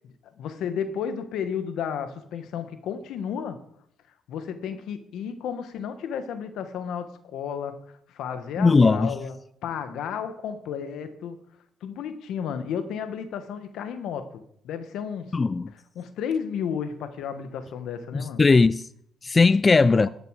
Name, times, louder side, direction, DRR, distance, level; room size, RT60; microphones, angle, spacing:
voice 1, 0.4-3.6 4.3-7.8 8.1-9.3 9.6-11.4 11.8-14.3 14.6-15.3 15.9-18.4 19.9-20.1, left 7 dB, 80° left, 1.4 m, -32 dB
voice 2, 8.6-9.1 15.3-15.7 18.1-18.9 19.2-20.1, left 4 dB, 30° left, 0.3 m, -18 dB
12.0 x 6.8 x 6.4 m
cardioid pair, 90°, 0 cm